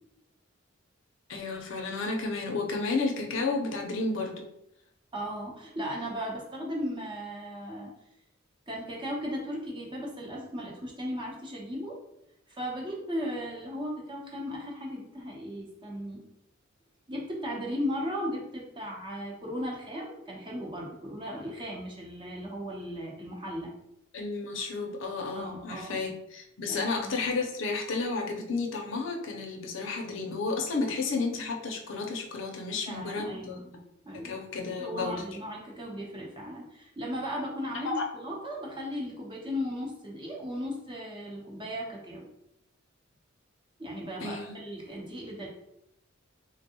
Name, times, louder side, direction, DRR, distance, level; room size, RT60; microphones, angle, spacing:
voice 1, 1.3-4.5 24.1-33.8 34.1-35.2 37.7-38.0 44.2-44.5, left 3 dB, 70° left, 2 dB, 0.6 m, -32 dB
voice 2, 5.1-7.9 8.7-12.0 12.5-16.3 17.1-23.7 25.3-26.0 26.7-27.1 31.2-31.3 32.9-33.7 34.0-34.4 34.8-42.2 43.8-45.5, equal, 25° right, -3 dB, 0.8 m, -36 dB
3.5 x 2.2 x 2.9 m, 0.80 s
head